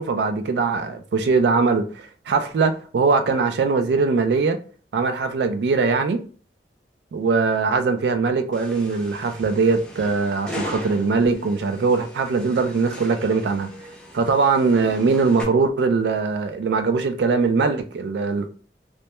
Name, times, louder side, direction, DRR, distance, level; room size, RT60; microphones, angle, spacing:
voice 1, 0.0-4.6 4.9-6.2 7.1-13.7 14.1-18.5, right 4 dB, 70° right, 0.3 m, -21 dB
sound 1, 8.5-15.4, equal, 5° left, 0.3 m, -39 dB
2.1 x 2.1 x 2.9 m
head